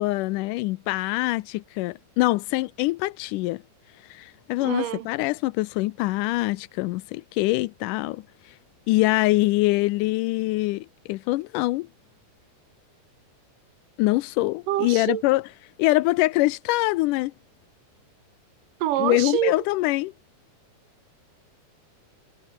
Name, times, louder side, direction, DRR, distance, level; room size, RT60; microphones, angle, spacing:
voice 1, 0.0-3.6 4.1-8.2 8.9-11.9 14.0-15.4 15.8-17.3 19.0-20.1, left 20 dB, 85° left, 2.2 m, -24 dB
voice 2, 4.6-5.1 14.7-15.2 18.8-19.6, right 13 dB, 90° right, 2.9 m, -26 dB
omnidirectional pair, 3.7 m